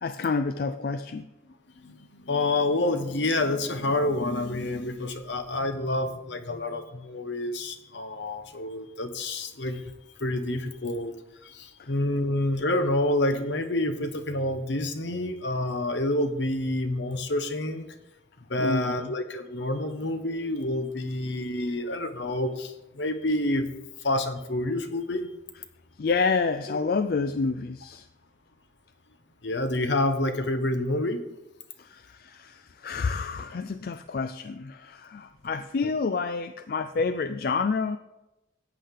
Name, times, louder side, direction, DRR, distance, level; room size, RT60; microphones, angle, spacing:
voice 1, 0.0-1.2 11.8-11.9 18.6-19.1 26.0-28.1 31.8-38.0, left 4 dB, 50° left, 10 dB, 0.4 m, -28 dB
voice 2, 1.8-9.8 10.2-11.1 11.4-17.9 18.5-23.7 24.0-25.3 26.7-26.8 29.4-31.2, left 1 dB, 70° left, 9 dB, 1.0 m, -28 dB
14.0 x 8.6 x 3.7 m, 0.96 s
head